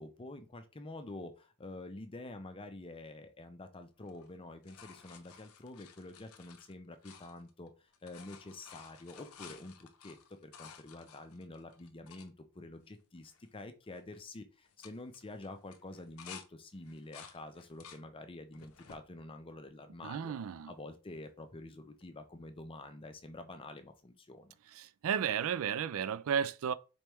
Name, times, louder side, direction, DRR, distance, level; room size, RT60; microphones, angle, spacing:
voice 1, 0.0-24.5, left 2 dB, 25° left, 0.5 m, -48 dB
sound 1, 4.0-7.7 7.9-12.3 12.9-13.0 13.2-13.6 13.9-14.2 14.6-16.5 16.8-18.0 18.5-19.0 19.7-20.4 22.0-22.1, left 7 dB, 70° left, 0.6 m, -54 dB
voice 2, 20.0-20.7 24.8-26.7, right 8 dB, 65° right, 0.3 m, -33 dB
4.3 x 3.4 x 3.0 m
head